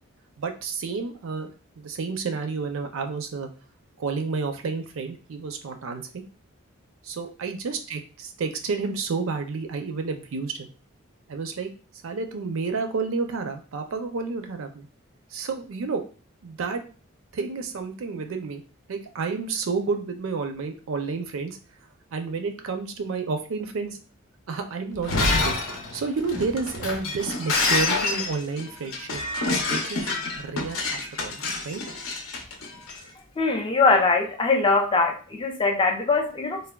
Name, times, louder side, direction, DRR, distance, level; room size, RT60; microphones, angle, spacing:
voice 1, 0.4-1.5 1.8-3.5 4.0-6.2 7.0-10.7 11.3-11.7 12.0-14.9 15.3-16.0 16.4-16.8 17.3-18.6 18.9-21.6 22.1-24.0 24.5-25.5 25.9-29.2 29.7-30.1 30.4-31.8, right 4 dB, 75° right, 6 dB, 0.4 m, -30 dB
Shatter, 24.9-33.0, left 3 dB, 80° left, 0.6 m, -27 dB
voice 2, 33.4-36.6, left 3 dB, 25° left, 3 dB, 0.3 m, -22 dB
3.3 x 2.1 x 2.2 m, 0.38 s
head